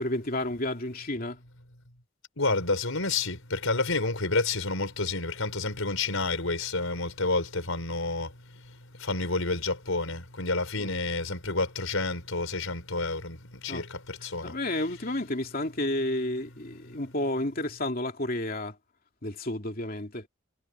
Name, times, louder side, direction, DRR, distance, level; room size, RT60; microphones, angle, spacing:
voice 1, 0.0-1.4 10.8-10.9 13.7-13.8 14.4-18.8 19.2-20.3, left 1 dB, 45° left, 2.8 m, -31 dB
voice 2, 2.4-14.6, left 3 dB, 85° left, 4.7 m, -30 dB
head